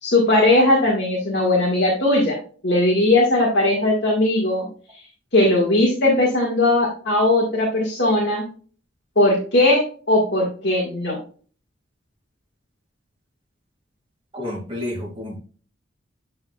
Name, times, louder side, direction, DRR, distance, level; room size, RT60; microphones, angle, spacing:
voice 1, 0.0-2.4 2.6-4.7 5.3-8.5 9.2-9.8 10.1-11.2, left 1 dB, 60° left, -3 dB, 1.7 m, -18 dB
voice 2, 14.3-15.4, left 1 dB, 30° right, -2 dB, 2.3 m, -30 dB
8.6 x 5.6 x 2.3 m, 0.40 s
head